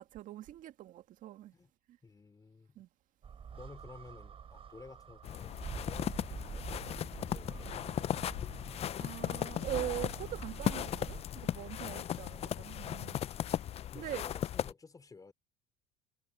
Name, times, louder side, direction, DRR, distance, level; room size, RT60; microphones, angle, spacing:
voice 1, 0.0-1.5 1.9-2.0 2.8-2.9 9.0-13.2 13.9-14.2, right 13 dB, 55° right, 2.0 m, -42 dB
voice 2, 2.0-2.8 3.5-6.7 7.0-8.1 12.2-13.0 13.9-15.3, left 4 dB, 25° left, 3.5 m, -55 dB
sound 1, 3.2-11.2, right 7 dB, 35° right, 3.8 m, -46 dB
sound 2, 5.2-14.7, left 11 dB, 40° left, 0.6 m, -37 dB
supercardioid pair, 85°, 16 cm